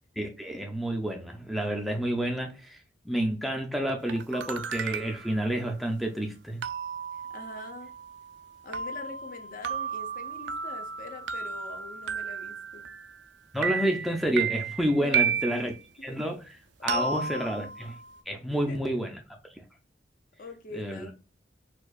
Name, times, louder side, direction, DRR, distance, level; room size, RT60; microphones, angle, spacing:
voice 1, 0.2-2.8 3.1-6.6 13.5-15.7 16.0-18.0 18.3-19.2 20.7-21.1, equal, ahead, 0.4 m, -29 dB
sound 1, 4.1-5.4 6.6-13.3 13.6-15.8 16.9-18.2, right 6 dB, 80° right, 0.4 m, -33 dB
voice 2, 7.1-7.9 8.6-12.8 15.0-15.7 16.8-17.7 18.7-19.0 20.4-21.1, left 3 dB, 50° left, 0.6 m, -43 dB
4.4 x 2.3 x 2.4 m
head